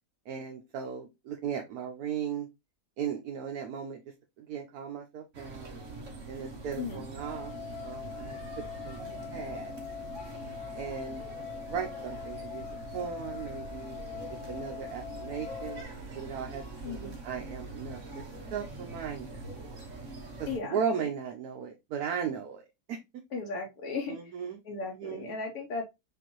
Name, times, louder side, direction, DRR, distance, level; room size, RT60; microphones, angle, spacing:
voice 1, 0.3-2.5 3.0-5.8 6.3-7.5 7.8-8.4 8.8-9.0 9.3-9.7 10.7-11.2 11.7-12.6 12.9-14.0 14.5-15.8 16.1-19.3 20.4-22.6 22.9-23.0 24.1-25.3, right 7 dB, 75° right, 1.2 m, -37 dB
sound 1, 5.3-20.6, right 2 dB, 55° right, 1.3 m, -43 dB
sound 2, 7.2-15.8, left 8 dB, 50° left, 1.1 m, -42 dB
voice 2, 16.8-17.2 20.5-20.8 23.3-24.2 24.6-25.8, left 4 dB, 80° left, 1.4 m, -35 dB
6.9 x 2.5 x 2.9 m
omnidirectional pair, 1.6 m